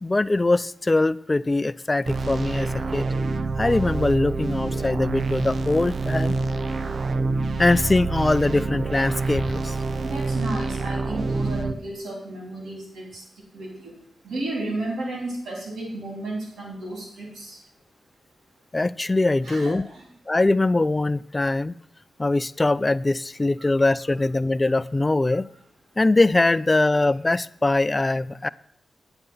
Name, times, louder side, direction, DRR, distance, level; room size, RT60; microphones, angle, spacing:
voice 1, 0.0-3.1 3.6-6.4 7.6-9.7 18.7-19.8 20.3-21.7 22.2-25.4 26.0-28.5, left 2 dB, 30° left, 18 dB, 0.4 m, -22 dB
sound 1, 2.0-11.7, right 3 dB, 60° right, 0.7 m, -26 dB
voice 2, 10.0-13.2 13.5-13.9 14.2-17.6 19.4-20.0 23.6-23.7 25.3-25.4, right 2 dB, 80° right, -1 dB, 3.6 m, -33 dB
10.0 x 8.0 x 5.5 m, 0.66 s
supercardioid pair, 40°, 0 cm